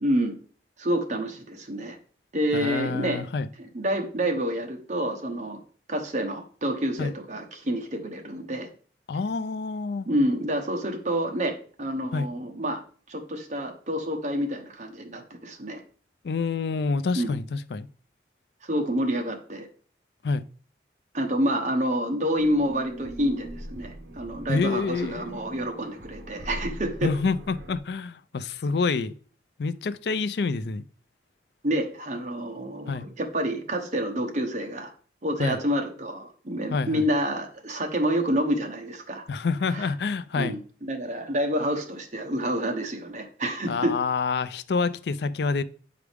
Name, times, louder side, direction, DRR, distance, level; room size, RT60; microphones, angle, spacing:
voice 1, 0.0-0.4 0.8-2.0 2.3-3.2 3.6-5.6 5.9-8.7 10.1-12.8 13.1-15.8 17.2-17.3 18.6-19.7 21.1-27.1 31.6-34.9 35.2-39.2 39.7-39.9 40.4-44.0, equal, 40° right, 1.1 m, -28 dB
voice 2, 2.5-3.5 7.0-7.1 9.1-10.1 12.1-12.3 16.2-17.9 20.2-20.4 24.5-25.4 27.0-29.1 29.6-30.8 32.9-33.1 35.4-35.6 36.7-37.0 39.3-40.6 43.7-45.6, left 4 dB, 65° left, 0.4 m, -27 dB
sound 1, 22.4-27.8, equal, 70° right, 0.9 m, -41 dB
8.1 x 4.8 x 3.4 m
head